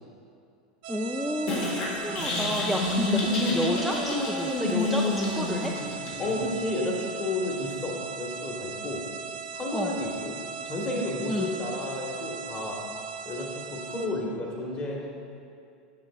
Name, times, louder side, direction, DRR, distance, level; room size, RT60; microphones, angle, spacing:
sound 1, 0.8-14.1, right 6 dB, 60° right, 0.4 m, -38 dB
voice 1, 0.9-5.7 9.7-9.9 11.3-11.5, equal, ahead, -1 dB, 0.4 m, -31 dB
sound 2, 1.5-6.5, left 2 dB, 60° left, 1.5 m, -28 dB
voice 2, 6.2-9.0 9.5-10.4 10.6-12.8 13.2-15.1, left 2 dB, 30° left, -2 dB, 1.3 m, -31 dB
7.3 x 6.4 x 2.4 m, 2.5 s
hypercardioid pair, 100°, 4 cm